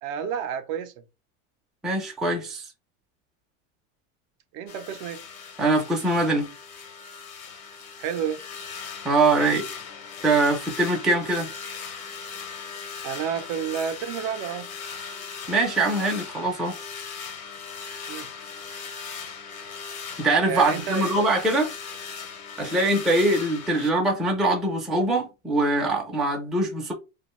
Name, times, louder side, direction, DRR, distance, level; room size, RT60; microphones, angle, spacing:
voice 1, 0.0-0.9 4.5-5.2 8.0-8.4 13.0-14.7 18.1-18.3 20.4-21.1, right 8 dB, 55° right, 0.5 m, -30 dB
voice 2, 1.8-2.6 5.6-6.5 9.0-9.7 10.2-11.5 15.5-16.8 20.2-21.7 22.6-26.9, right 2 dB, ahead, 0.4 m, -23 dB
sound 1, 4.7-23.9, left 6 dB, 80° left, 1.0 m, -38 dB
2.4 x 2.3 x 3.0 m
supercardioid pair, 125°, 40 cm